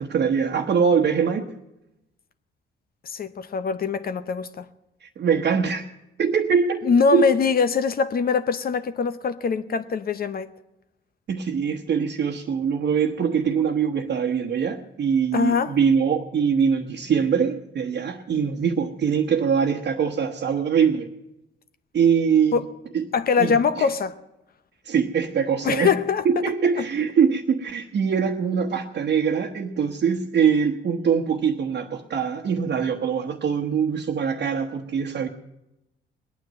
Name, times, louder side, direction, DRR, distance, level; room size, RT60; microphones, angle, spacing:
voice 1, 0.0-1.5 5.0-5.9 6.2-7.3 11.3-21.1 21.9-22.6 22.9-23.0 23.4-23.9 24.8-25.9 26.2-35.3, right 6 dB, 55° right, 1 dB, 1.2 m, -23 dB
voice 2, 3.0-4.7 6.8-10.5 15.3-15.7 22.5-22.6 23.1-24.2 25.6-26.2 26.8-26.9, left 5 dB, 50° left, 12 dB, 0.9 m, -22 dB
20.0 x 9.4 x 7.6 m, 0.92 s
cardioid pair, 90°, 20 cm